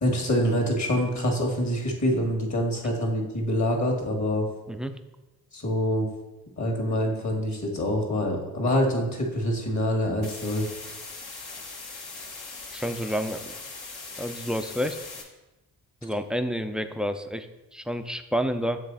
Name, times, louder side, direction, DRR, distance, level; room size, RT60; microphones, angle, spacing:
voice 1, 0.0-4.5 5.5-6.1 6.6-10.7, equal, 40° left, 1 dB, 1.8 m, -25 dB
voice 2, 4.7-5.0 12.7-13.5 14.2-15.0 16.0-18.8, equal, ahead, 8 dB, 0.4 m, -29 dB
sound 1, 10.2-15.2, left 3 dB, 60° left, 1.4 m, -40 dB
7.4 x 3.3 x 4.0 m, 1.0 s
hypercardioid pair, 45°, 43 cm